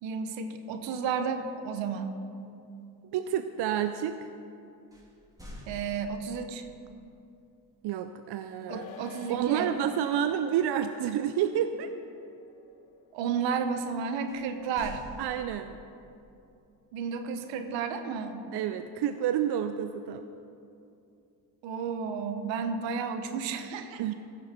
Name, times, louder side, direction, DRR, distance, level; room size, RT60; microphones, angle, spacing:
voice 1, 0.0-2.2 5.7-6.6 8.7-9.7 13.1-15.0 16.9-18.4 21.6-24.1, right 6 dB, 80° right, 8 dB, 1.0 m, -32 dB
voice 2, 3.1-4.3 7.8-8.9 9.3-11.9 15.2-15.8 18.5-20.3 24.0-24.1, right 9 dB, 60° right, 9 dB, 0.6 m, -29 dB
sound 1, 4.9-6.5 9.3-9.6 10.0-10.3 14.3-15.9, equal, 10° right, 2.8 m, -47 dB
sound 2, 8.7-15.4 15.6-15.7, left 6 dB, 75° left, 0.9 m, -51 dB
15.5 x 6.7 x 4.4 m, 2.6 s
hypercardioid pair, 50°, 45 cm